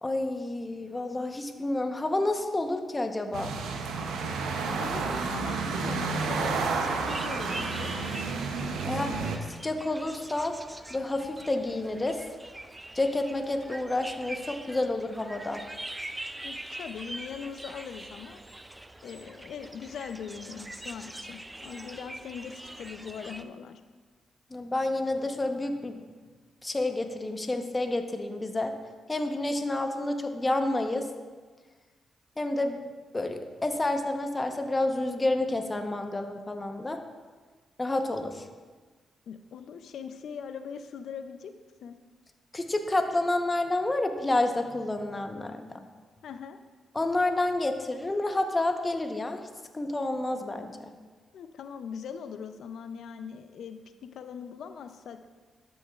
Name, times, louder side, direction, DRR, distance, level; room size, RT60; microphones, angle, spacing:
voice 1, 0.0-3.5 8.8-9.1 9.6-10.6 10.9-12.2 12.9-15.6 24.5-26.0 26.6-28.7 29.1-31.1 32.4-37.0 37.8-38.4 42.5-45.8 46.9-49.4 49.7-50.9, left 2 dB, 25° left, 6 dB, 0.9 m, -29 dB
sound 1, 3.3-9.4, right 4 dB, 85° right, 0.7 m, -31 dB
voice 2, 4.7-7.9 8.8-9.4 16.4-18.4 19.0-23.8 39.3-41.5 41.8-42.0 46.2-46.6 51.3-55.2, left 7 dB, 75° left, 9 dB, 0.5 m, -41 dB
sound 2, 6.8-23.4, right 1 dB, 15° right, 0.4 m, -43 dB
12.5 x 6.2 x 2.4 m, 1.4 s
supercardioid pair, 55°, 0 cm